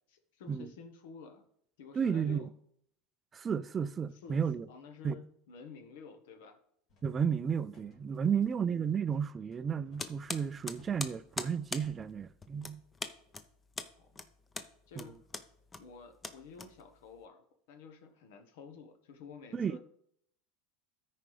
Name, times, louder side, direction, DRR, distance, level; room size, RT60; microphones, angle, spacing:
voice 1, 0.1-1.5 1.8-2.5 4.1-4.4 4.7-6.6 8.2-8.3 14.0-14.1 14.9-15.2 15.8-17.4 17.7-19.8, left 5 dB, 75° left, 1.1 m, -51 dB
voice 2, 2.0-2.5 3.3-4.7 5.0-5.2 7.0-12.8 15.0-15.1 19.5-19.8, right 7 dB, 25° right, 0.3 m, -33 dB
sound 1, 6.9-11.9, left 2 dB, 45° left, 2.5 m, -63 dB
sound 2, 10.0-17.2, left 3 dB, 15° left, 0.6 m, -43 dB
13.5 x 4.7 x 3.3 m
supercardioid pair, 125°, 0 cm